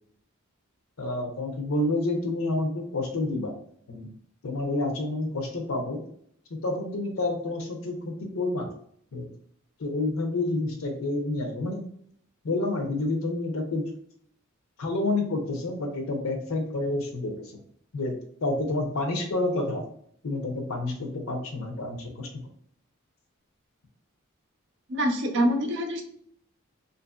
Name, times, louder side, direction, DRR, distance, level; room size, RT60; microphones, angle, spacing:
voice 1, 1.0-3.5 3.9-4.1 4.4-6.0 6.5-8.7 9.1-9.3 9.8-11.8 12.4-13.9 14.8-17.4 17.9-19.8 20.2-22.5, left 2 dB, 80° left, 4 dB, 0.7 m, -29 dB
voice 2, 24.9-26.0, equal, 60° right, 3 dB, 0.6 m, -25 dB
2.8 x 2.6 x 2.3 m, 0.64 s
head